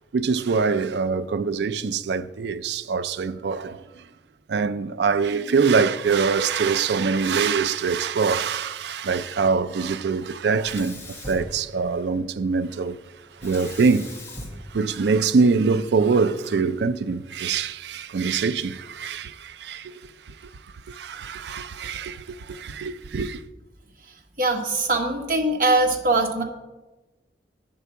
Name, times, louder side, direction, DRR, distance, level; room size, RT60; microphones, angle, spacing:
voice 1, 0.1-3.8 4.5-13.0 13.4-14.1 14.7-19.9 20.9-23.4, right 5 dB, 70° right, 0.4 m, -24 dB
Sink (filling or washing), 10.6-12.2 13.4-15.6, left 1 dB, 15° left, 1.4 m, -40 dB
voice 2, 24.4-26.4, right 2 dB, 50° right, 1.2 m, -22 dB
9.1 x 4.7 x 6.8 m
head